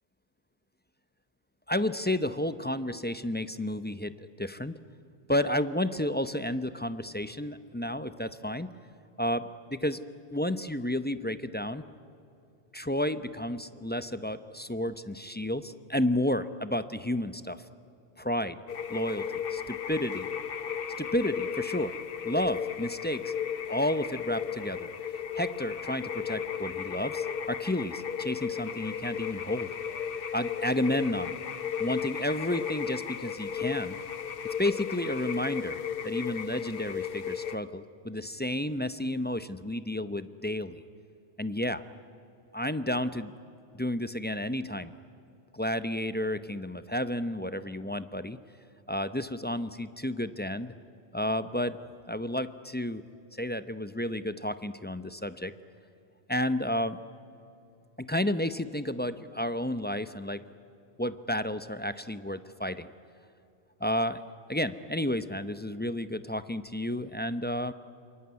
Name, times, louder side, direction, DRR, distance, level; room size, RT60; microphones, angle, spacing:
voice 1, 1.7-4.8 5.3-8.7 9.2-10.0 10.3-11.8 12.7-17.6 18.2-18.6 18.9-20.3 21.0-22.0 22.2-23.3 23.7-24.9 25.3-29.7 30.3-31.4 31.8-34.0 34.6-40.8 41.4-41.8 42.5-43.3 43.7-44.9 45.5-48.4 48.9-50.7 51.1-51.8 52.1-53.0 53.3-55.5 56.3-57.0 58.0-60.4 61.0-62.9 63.8-64.2 64.5-67.7, left 1 dB, 10° left, 12 dB, 0.5 m, -31 dB
sound 1, 18.7-37.6, left 7 dB, 60° left, 1.0 m, -35 dB
26.5 x 23.0 x 9.6 m, 2.7 s
omnidirectional pair, 1.1 m